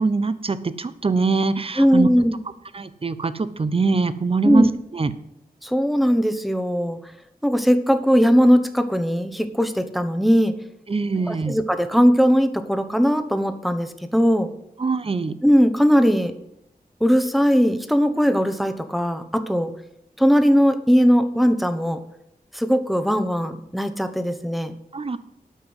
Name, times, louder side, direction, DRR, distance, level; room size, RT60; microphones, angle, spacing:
voice 1, 0.0-2.1 2.7-4.7 4.9-5.1 10.9-11.6 14.8-15.4 24.9-25.2, right 4 dB, 35° right, 14 dB, 0.8 m, -23 dB
voice 2, 1.8-2.4 4.4-4.7 5.6-7.0 7.4-10.6 11.3-14.5 15.4-16.3 17.0-19.7 20.2-22.0 22.5-24.7, equal, ahead, 8 dB, 1.0 m, -19 dB
9.3 x 5.9 x 7.9 m, 0.81 s
wide cardioid pair, 90°, 16 cm